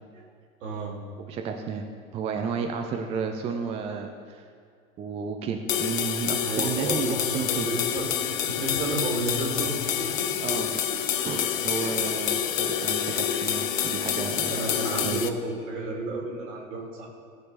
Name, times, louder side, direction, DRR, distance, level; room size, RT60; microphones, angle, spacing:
voice 1, 0.6-1.0 6.4-11.0 11.8-12.3 14.5-17.1, right 2 dB, 60° right, -1 dB, 2.7 m, -32 dB
voice 2, 1.3-4.4 5.0-7.7 10.4-10.7 11.2-14.6 15.0-15.2, right 6 dB, 15° right, 4 dB, 0.4 m, -32 dB
sound 1, 5.7-15.3, left 9 dB, 65° left, 0.8 m, -28 dB
17.0 x 6.5 x 4.0 m, 2.2 s
figure-of-eight pair, 90°, 43 cm